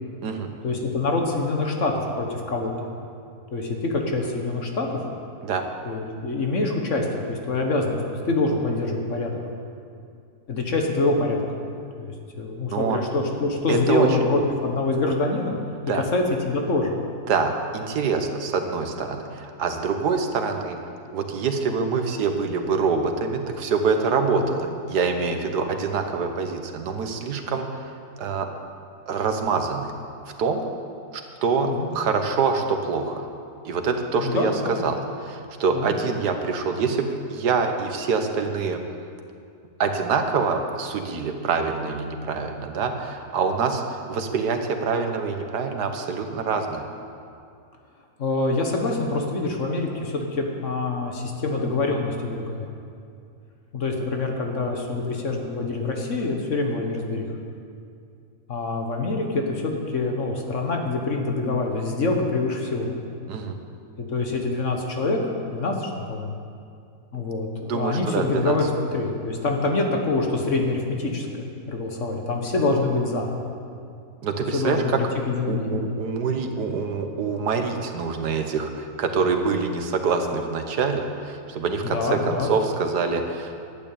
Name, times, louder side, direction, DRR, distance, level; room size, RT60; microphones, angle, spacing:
voice 1, 0.6-2.9 3.5-5.0 5.9-9.4 10.5-11.7 12.0-15.5 15.9-17.0 24.3-24.4 31.7-31.9 34.2-35.0 35.7-35.9 48.2-52.7 53.7-57.3 58.5-62.9 64.0-66.3 67.1-73.3 74.5-75.8 81.9-82.5, left 3 dB, 50° left, 2 dB, 1.6 m, -25 dB
voice 2, 13.7-14.1 15.9-16.0 17.3-20.8 21.1-27.9 28.2-28.5 29.1-29.9 30.4-30.6 31.1-33.3 33.7-34.5 34.8-35.0 35.2-38.8 39.8-46.9 63.3-63.6 67.7-68.5 74.2-75.0 75.5-83.6, right 5 dB, 90° right, 5 dB, 1.6 m, -25 dB
11.5 x 8.8 x 8.6 m, 2.4 s
omnidirectional pair, 1.7 m